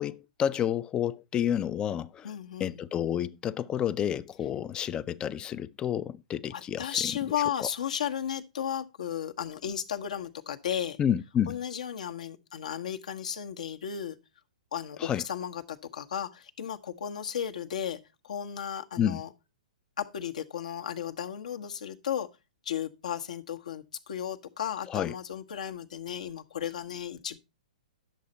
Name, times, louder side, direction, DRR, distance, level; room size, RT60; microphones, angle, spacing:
voice 1, 0.0-2.3 2.6-7.0 7.6-7.7 11.0-11.6 15.0-15.2 19.0-19.2 24.9-25.1, left 9 dB, 20° left, 0.5 m, -30 dB
voice 2, 2.2-2.8 6.5-11.0 11.5-14.1 14.7-18.0 18.2-19.3 20.0-22.3 22.6-27.4, left 9 dB, 70° left, 1.3 m, -34 dB
10.5 x 6.8 x 4.2 m
hypercardioid pair, 125°, 4 cm